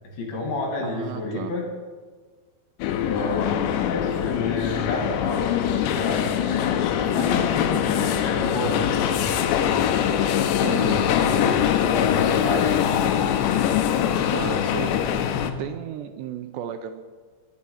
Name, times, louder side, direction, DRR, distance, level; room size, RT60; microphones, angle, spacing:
voice 1, 0.1-1.7 2.8-9.4 10.6-13.2, left 2 dB, 55° left, 0 dB, 4.0 m, -30 dB
voice 2, 0.8-1.5 10.6-11.0 14.3-14.9 15.2-17.0, right 10 dB, 85° right, 8 dB, 2.6 m, -34 dB
sound 1, 2.8-15.5, left 9 dB, 80° left, 2.9 m, -23 dB
21.5 x 7.5 x 5.6 m, 1.4 s
omnidirectional pair, 5.2 m